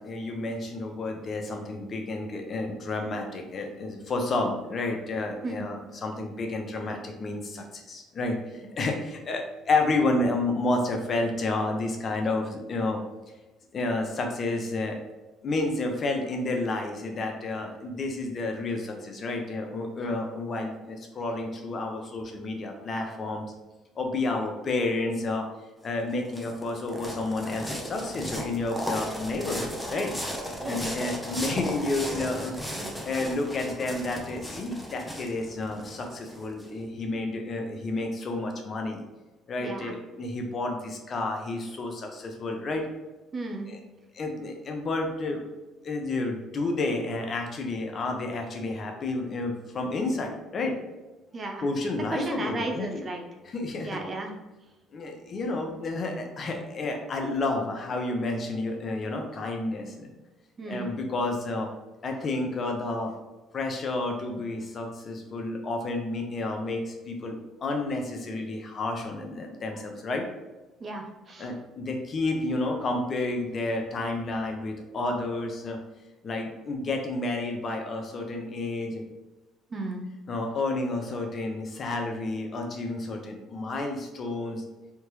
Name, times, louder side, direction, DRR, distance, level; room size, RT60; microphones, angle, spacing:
voice 1, 0.0-8.4 8.8-13.0 13.7-15.0 15.4-23.4 24.0-25.5 25.8-30.1 30.7-32.6 33.0-39.0 39.5-42.8 43.7-43.8 44.1-45.4 45.8-50.7 51.6-53.1 53.4-54.0 54.9-60.1 60.7-61.7 62.0-63.1 63.5-70.3 71.4-75.8 76.2-79.0 80.3-84.6, left 2 dB, 45° left, 3 dB, 0.7 m, -30 dB
sound 1, 25.8-36.7, equal, 5° left, 0.8 m, -36 dB
voice 2, 39.6-39.9 43.3-43.7 51.3-51.7 52.1-53.2 53.8-54.3 60.6-60.9 70.8-71.5 79.7-80.0, right 2 dB, 40° right, 3 dB, 0.7 m, -34 dB
3.4 x 2.9 x 3.1 m, 1.1 s
supercardioid pair, 80°, 0 cm